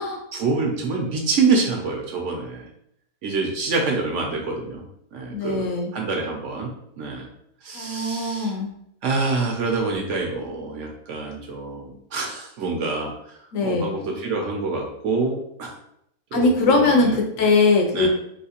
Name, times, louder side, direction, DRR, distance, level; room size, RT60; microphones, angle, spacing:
voice 1, 0.3-2.6 3.2-4.8 5.1-6.7 7.0-7.3 7.6-8.5 9.0-13.3 13.6-15.7 16.3-17.1 17.4-17.5 17.9-18.1, right 4 dB, 65° right, 0 dB, 0.9 m, -26 dB
voice 2, 5.3-5.9 7.7-8.7 13.5-13.9 16.3-18.1, left 3 dB, 70° left, 2 dB, 1.0 m, -21 dB
3.3 x 2.8 x 2.8 m, 0.74 s
omnidirectional pair, 1.5 m